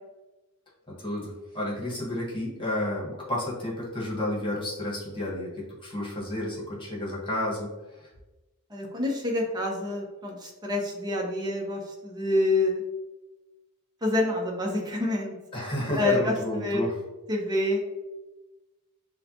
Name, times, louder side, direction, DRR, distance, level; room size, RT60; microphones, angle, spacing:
voice 1, 1.0-7.7 15.5-16.9, left 1 dB, 25° left, -4 dB, 1.4 m, -31 dB
voice 2, 8.7-12.7 14.0-15.3 15.9-16.8 17.3-17.8, left 2 dB, 20° right, 0 dB, 0.8 m, -27 dB
6.4 x 2.2 x 2.9 m, 1.1 s
head